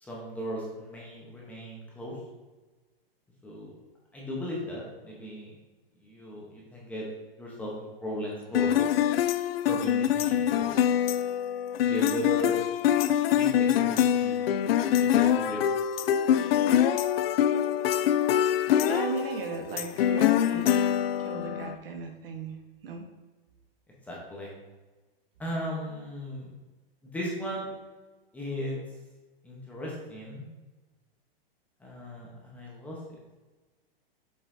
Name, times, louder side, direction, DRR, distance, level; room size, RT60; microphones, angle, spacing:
voice 1, 0.0-2.2 3.4-3.7 4.1-5.5 6.0-7.1 7.4-8.8 9.7-10.8 11.8-12.6 13.4-14.4 15.0-15.7 24.1-24.5 25.4-26.5 27.1-27.7 28.3-28.7 29.4-30.4 31.8-33.0, equal, 5° left, -4 dB, 0.8 m, -36 dB
sound 1, 8.5-21.7, left 10 dB, 80° left, 0.5 m, -24 dB
voice 2, 18.8-20.7 21.2-22.6 22.8-23.1, right 5 dB, 70° right, 3 dB, 1.2 m, -36 dB
7.2 x 5.5 x 2.6 m, 1.2 s
supercardioid pair, 165°, 30 cm